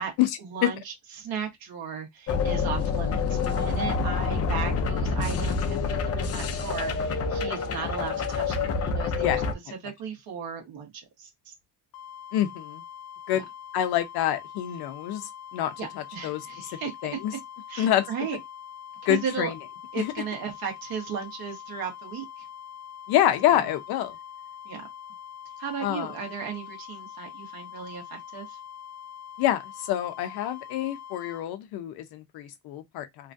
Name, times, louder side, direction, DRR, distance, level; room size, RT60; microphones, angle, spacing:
voice 1, 0.4-11.5 13.3-13.4 15.8-17.4 17.7-18.4 19.0-19.5 19.9-22.5 23.5-23.6 24.6-24.9 25.6-28.6, right 7 dB, 65° right, 1.3 m, -36 dB
sound 1, 2.3-9.5, left 5 dB, 40° left, 0.6 m, -27 dB
sound 2, 11.9-31.5, left 9 dB, 60° left, 0.9 m, -43 dB
voice 2, 12.3-12.8 13.3-13.5 13.7-16.4 17.0-17.3 17.8-18.0 19.1-19.5 20.0-20.1 23.1-24.2 25.8-26.1 29.4-33.3, left 12 dB, 80° left, 0.6 m, -26 dB
3.0 x 2.3 x 2.6 m
cardioid pair, 100°, 38 cm